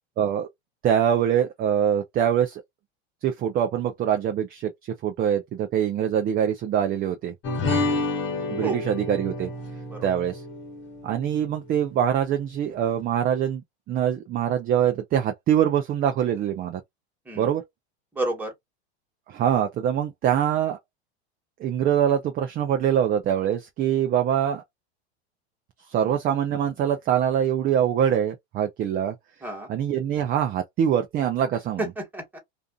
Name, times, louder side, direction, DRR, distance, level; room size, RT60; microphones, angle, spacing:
voice 1, 0.2-0.5 0.8-2.6 3.2-7.3 8.5-9.5 10.0-10.4 11.0-13.6 13.9-16.8 17.4-17.6 19.3-20.8 21.6-24.6 25.9-29.1 29.7-31.8, right 9 dB, 25° right, 0.5 m, -24 dB
sound 1, 7.4-12.1, left 2 dB, 35° left, 1.1 m, -30 dB
voice 2, 18.1-18.5 26.0-26.2 29.4-29.7 31.8-32.4, right 2 dB, 5° right, 1.4 m, -31 dB
2.5 x 2.4 x 2.3 m
hypercardioid pair, 110°, 33 cm